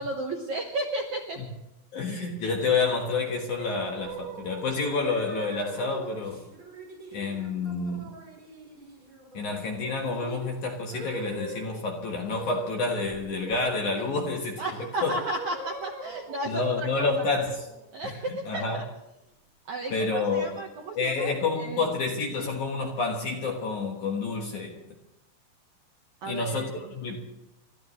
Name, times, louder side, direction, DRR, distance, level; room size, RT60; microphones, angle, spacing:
voice 1, 0.0-1.4 14.6-17.1 17.9-18.8 19.7-21.9 26.2-26.9, right 2 dB, 65° right, 1 dB, 1.9 m, -33 dB
voice 2, 1.9-6.4 7.1-8.2 9.3-14.6 15.0-15.2 16.5-17.7 18.0-18.1 18.5-18.8 19.9-20.5 20.9-24.7 26.2-27.2, left 4 dB, 60° left, 1 dB, 2.3 m, -29 dB
sound 1, 3.2-11.8 12.3-12.7 13.0-14.3 14.7-18.5, right 3 dB, 25° right, 5.5 m, -41 dB
30.0 x 13.5 x 3.2 m, 0.93 s
omnidirectional pair, 5.1 m